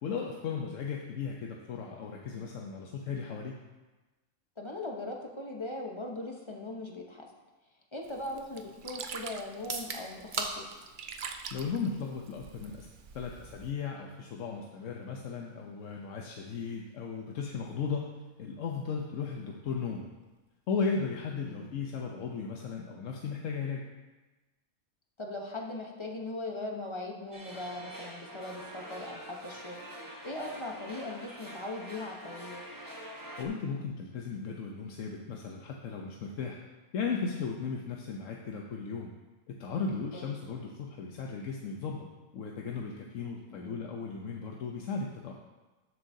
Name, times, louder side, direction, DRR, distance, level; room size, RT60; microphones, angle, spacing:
voice 1, 0.0-3.6 11.5-12.9 13.1-18.1 18.4-20.1 20.7-23.8 33.4-36.6 36.9-39.1 39.5-42.1 42.3-45.4, left 5 dB, 65° left, 0 dB, 1.1 m, -36 dB
voice 2, 4.6-7.3 7.9-10.6 21.4-21.7 25.2-29.8 30.2-32.6 40.1-40.3 43.5-43.8, left 2 dB, 25° left, 0 dB, 0.8 m, -39 dB
Sink (filling or washing), 8.0-13.7, right 6 dB, 65° right, 0.5 m, -46 dB
sound 1, 9.5-23.4, right 3 dB, 40° right, 0.9 m, -47 dB
sound 2, 27.3-33.5, right 1 dB, 15° right, 1.0 m, -45 dB
12.5 x 7.7 x 2.7 m, 1.2 s
omnidirectional pair, 1.5 m